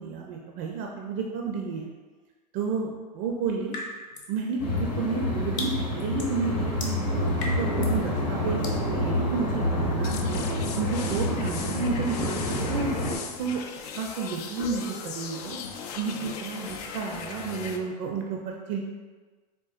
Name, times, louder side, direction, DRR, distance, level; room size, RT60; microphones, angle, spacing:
voice 1, 0.0-1.9 2.5-3.8 4.3-15.6 16.0-18.8, right 5 dB, 55° right, 0 dB, 0.4 m, -31 dB
sound 1, 3.7-4.4 4.8-8.0 8.6-8.8, left 2 dB, 40° left, 0.8 m, -38 dB
sound 2, 4.6-13.2, left 1 dB, 85° left, 0.9 m, -28 dB
sound 3, 10.0-17.8, left 6 dB, 70° left, 0.4 m, -38 dB
3.7 x 2.3 x 2.4 m, 1.4 s
hypercardioid pair, 110°, 21 cm